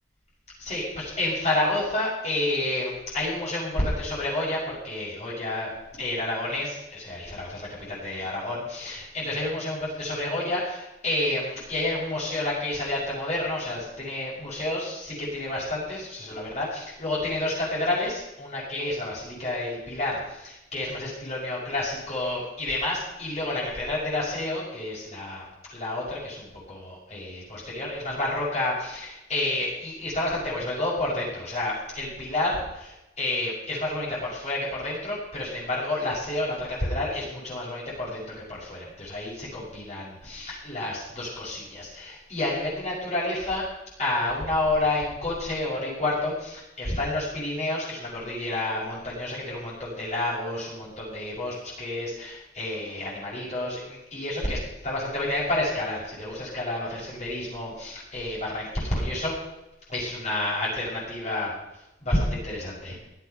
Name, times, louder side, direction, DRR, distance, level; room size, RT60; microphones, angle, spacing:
voice 1, 0.6-25.4 25.7-43.6 44.0-59.3 59.9-61.5 62.0-63.0, left 2 dB, 35° left, -6 dB, 6.0 m, -30 dB
16.5 x 11.5 x 5.8 m, 0.91 s
head